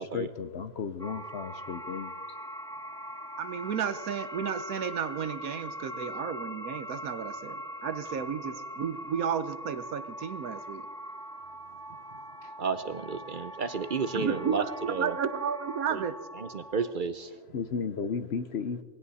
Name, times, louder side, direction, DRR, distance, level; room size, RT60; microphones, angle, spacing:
voice 1, 0.0-2.1 17.5-18.8, left 5 dB, 55° left, 0.9 m, -34 dB
sound 1, 1.0-16.9, equal, 5° left, 0.4 m, -41 dB
voice 2, 3.4-10.9 14.1-16.1, right 7 dB, 85° right, 1.4 m, -33 dB
voice 3, 12.6-15.1 15.9-16.0 16.4-17.3, right 5 dB, 50° right, 0.6 m, -32 dB
20.5 x 16.5 x 4.1 m
omnidirectional pair, 1.5 m